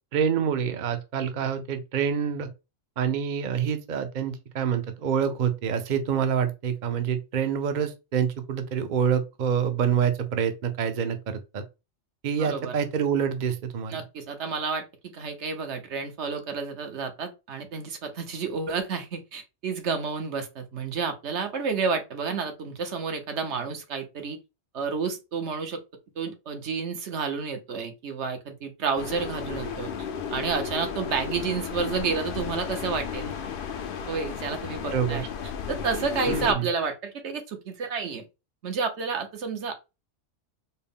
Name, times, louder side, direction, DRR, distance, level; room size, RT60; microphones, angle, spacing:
voice 1, 0.1-2.5 3.0-11.6 12.2-14.0 34.9-35.3 36.3-36.7, right 7 dB, 50° right, 0.6 m, -27 dB
voice 2, 12.4-12.8 13.9-14.8 15.1-24.4 24.7-25.8 26.2-33.3 34.1-35.3 35.7-38.2 38.6-39.7, right 5 dB, 75° right, 1.1 m, -30 dB
sound 1, 29.0-36.5, left 7 dB, 60° left, 0.6 m, -34 dB
4.3 x 2.0 x 3.5 m
omnidirectional pair, 1.2 m